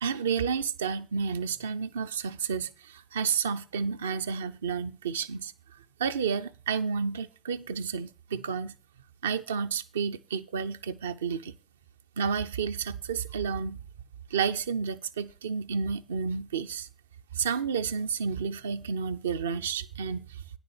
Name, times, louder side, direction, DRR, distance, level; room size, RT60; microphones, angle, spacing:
voice 1, 0.0-5.5 6.0-8.7 9.2-11.5 12.2-13.8 14.3-16.9 17.3-20.4, right 6 dB, 75° right, 0.4 m, -31 dB
9.8 x 7.0 x 5.8 m
figure-of-eight pair, 50°, 0 cm